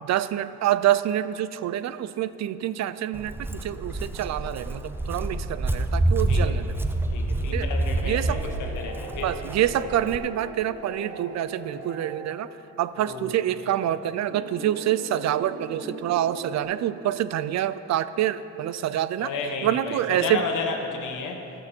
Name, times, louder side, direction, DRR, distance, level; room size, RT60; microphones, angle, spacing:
voice 1, 0.0-6.8 7.5-7.7 8.0-8.5 9.2-12.5 12.8-19.3 19.6-20.4, right 12 dB, 65° right, 15 dB, 0.5 m, -26 dB
Walk footsteps, 3.1-10.2, right 1 dB, 5° right, 0.5 m, -27 dB
voice 2, 7.1-9.3 13.1-13.3 19.2-21.4, left 4 dB, 85° left, 3 dB, 1.4 m, -32 dB
sound 1, 8.2-12.4 14.3-16.6, right 2 dB, 90° right, 1.6 m, -40 dB
18.5 x 6.3 x 4.4 m, 2.9 s
cardioid pair, 90°, 30 cm